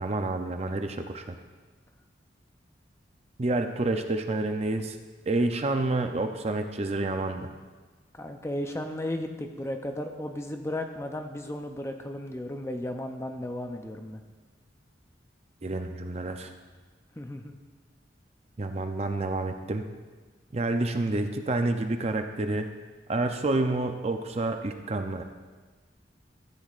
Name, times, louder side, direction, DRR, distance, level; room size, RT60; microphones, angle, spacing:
voice 1, 0.0-1.3 3.4-5.0 5.3-7.5 15.6-16.5 18.6-19.8 20.5-22.7 23.1-25.2, right 2 dB, 35° right, 6 dB, 0.5 m, -28 dB
voice 2, 8.2-14.2 17.2-17.6, left 1 dB, 15° left, 5 dB, 0.5 m, -35 dB
13.5 x 8.2 x 2.4 m, 1.4 s
head